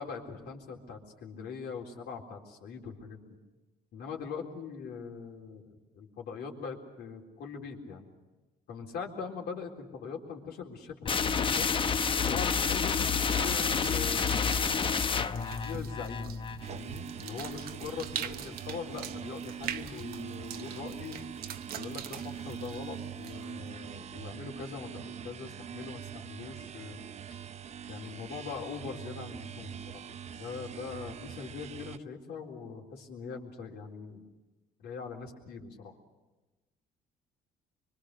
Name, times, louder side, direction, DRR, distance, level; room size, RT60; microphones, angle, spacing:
voice 1, 0.0-3.2 3.9-8.1 8.7-11.7 12.2-14.6 15.3-16.4 16.7-21.2 21.8-27.0 27.9-34.2 34.8-36.0, left 5 dB, 75° left, 0 dB, 3.9 m, -41 dB
sound 1, 11.1-16.7, left 6 dB, 30° left, 0.9 m, -29 dB
sound 2, 12.5-23.7, right 9 dB, 65° right, 1.1 m, -44 dB
sound 3, 16.6-32.0, right 8 dB, 40° right, 0.8 m, -43 dB
24.5 x 24.0 x 6.6 m, 1.2 s
cardioid pair, 110°, 17 cm